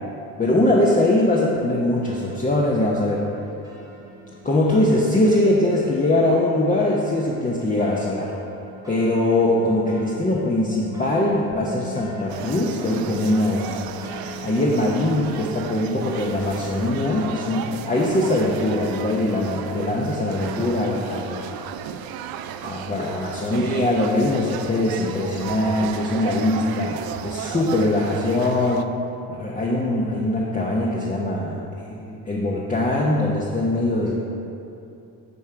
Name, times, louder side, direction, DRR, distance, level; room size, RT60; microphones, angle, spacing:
voice 1, 0.4-3.3 4.4-8.3 8.9-13.8 14.4-21.5 22.6-28.8 29.3-34.1, left 1 dB, 20° left, -3 dB, 0.8 m, -22 dB
sound 1, 2.1-21.7, left 1 dB, 10° right, 1.0 m, -42 dB
sound 2, 12.3-28.9, right 9 dB, 55° right, 0.5 m, -34 dB
9.5 x 3.2 x 4.8 m, 2.7 s
hypercardioid pair, 65°, 43 cm